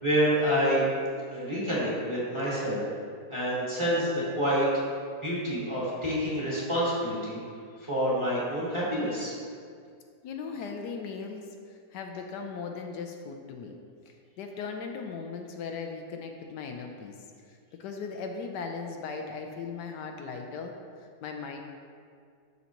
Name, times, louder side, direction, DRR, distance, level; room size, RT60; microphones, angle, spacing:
voice 1, 0.0-0.8 1.3-2.8 3.3-4.6 5.2-7.4 7.8-9.3, equal, 15° right, -8 dB, 1.7 m, -27 dB
voice 2, 10.2-11.5 11.9-13.8 14.1-17.1 17.5-20.7 21.2-21.6, left 5 dB, 80° left, 3 dB, 1.2 m, -38 dB
12.0 x 4.1 x 3.0 m, 2.2 s
omnidirectional pair, 1.8 m